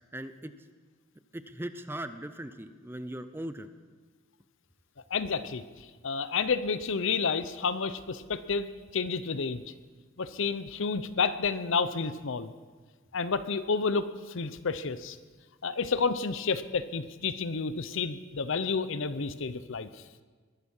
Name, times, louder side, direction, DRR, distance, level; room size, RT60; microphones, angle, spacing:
voice 1, 0.1-0.5 1.3-3.7, right 1 dB, 10° right, 11 dB, 0.6 m, -39 dB
voice 2, 5.1-5.6 6.0-8.7 8.9-9.6 10.2-12.5 13.1-15.2 15.6-20.0, left 5 dB, 65° left, 13 dB, 0.7 m, -30 dB
22.0 x 11.0 x 5.5 m, 1.4 s
head